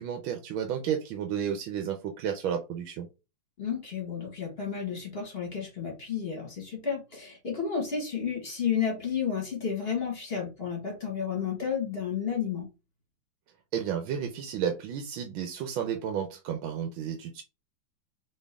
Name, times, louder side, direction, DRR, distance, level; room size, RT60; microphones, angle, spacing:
voice 1, 0.0-3.1 13.7-17.4, right 8 dB, 85° right, 4 dB, 1.6 m, -32 dB
voice 2, 3.6-12.7, left 7 dB, 30° left, 0 dB, 1.7 m, -32 dB
4.4 x 3.5 x 3.4 m, 0.28 s
omnidirectional pair, 2.1 m